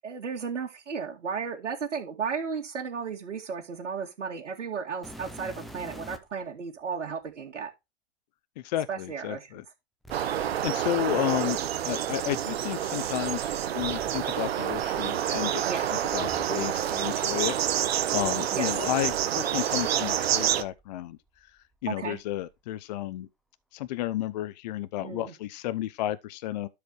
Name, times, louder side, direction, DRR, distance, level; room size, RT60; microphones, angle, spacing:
voice 1, 0.0-7.7 8.9-9.5 15.6-15.9 18.5-18.7 21.9-22.2 25.0-25.3, right 6 dB, 80° right, 2.5 m, -34 dB
sound 1, 5.0-6.4 7.3-7.4 10.0-12.1 13.3-17.0 17.3-18.4 19.1-19.3 19.9-20.0 20.6-21.7 22.0-22.5 23.8-23.9, equal, ahead, 0.5 m, -49 dB
voice 2, 8.6-9.6 10.3-11.6 11.8-23.3 23.7-26.7, left 14 dB, 35° left, 0.7 m, -32 dB
sound 2, 10.1-20.6, right 10 dB, 60° right, 1.3 m, -28 dB
12.5 x 5.0 x 3.1 m
hypercardioid pair, 135°, 35 cm